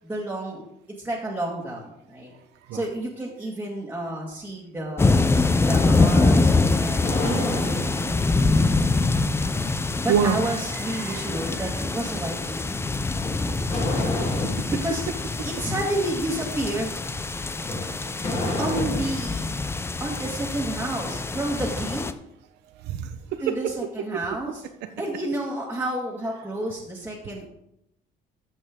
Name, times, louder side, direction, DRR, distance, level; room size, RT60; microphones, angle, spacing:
voice 1, 0.0-0.6 1.0-2.3 2.7-5.2 5.6-9.0 10.0-12.6 14.8-15.0 15.4-16.9 18.6-19.5 20.0-22.0 23.4-24.6 25.0-27.5, right 1 dB, 10° right, -4 dB, 1.9 m, -30 dB
sound 1, 5.0-22.1, left 3 dB, 15° left, 0.5 m, -24 dB
sound 2, 6.5-8.2 13.1-14.7 17.6-19.3, left 2 dB, 35° left, 3.0 m, -30 dB
voice 2, 10.1-10.4 10.9-11.6 14.0-14.1 22.8-23.6, right 8 dB, 85° right, 9 dB, 0.9 m, -26 dB
14.0 x 5.4 x 3.7 m, 0.79 s
cardioid pair, 110°, 17 cm